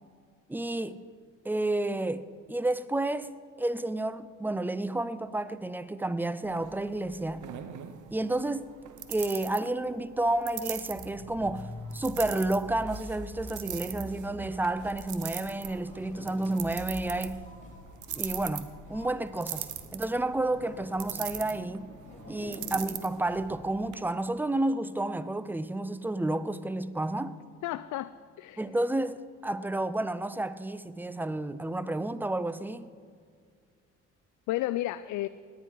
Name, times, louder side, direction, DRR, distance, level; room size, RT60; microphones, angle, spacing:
voice 1, 0.5-1.0 1.4-3.3 3.6-7.5 8.1-8.7 9.1-17.5 18.1-19.7 19.9-21.9 22.3-27.4 28.6-29.2 29.4-32.9, right 2 dB, 5° right, 0.5 m, -31 dB
sound 1, 6.4-24.0, right 11 dB, 80° right, 0.9 m, -42 dB
sound 2, 10.9-23.0, left 1 dB, 25° left, 2.5 m, -46 dB
voice 2, 27.6-28.6 34.5-35.3, left 15 dB, 75° left, 0.4 m, -32 dB
18.0 x 10.5 x 4.6 m
cardioid pair, 90°, 30 cm